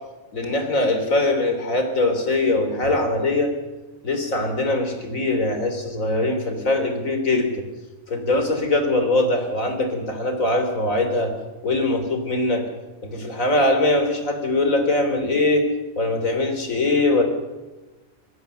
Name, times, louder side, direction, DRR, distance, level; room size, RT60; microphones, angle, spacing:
voice 1, 0.3-3.5 4.0-7.5 8.1-11.3 11.6-12.7 13.0-15.7 16.0-17.2, left 2 dB, 85° left, 6 dB, 3.8 m, -22 dB
25.0 x 17.0 x 6.8 m, 1.1 s
omnidirectional pair, 1.4 m